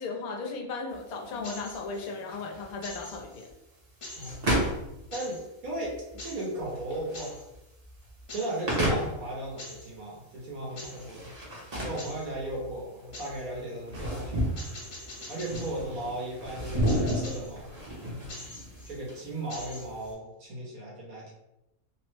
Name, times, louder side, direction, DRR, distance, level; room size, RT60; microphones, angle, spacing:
voice 1, 0.0-3.5, left 4 dB, 90° left, 1 dB, 1.1 m, -36 dB
sound 1, 0.9-20.1, equal, 35° right, 0.7 m, -34 dB
sound 2, 1.4-2.1 2.8-3.5 4.0-4.6 5.1-5.4 6.2-6.5 7.1-7.5 8.3-8.6 9.6-9.9 10.8-11.1 12.0-12.3 13.1-13.4 14.6-15.8 16.9-17.5 18.3-19.0 19.5-20.1, left 1 dB, 50° left, 0.4 m, -44 dB
voice 2, 4.2-4.8 5.1-7.5 8.3-11.3 11.8-14.7 15.3-17.7 18.9-21.3, right 1 dB, 80° right, -5 dB, 1.3 m, -36 dB
3.1 x 2.0 x 3.1 m, 0.91 s
omnidirectional pair, 1.5 m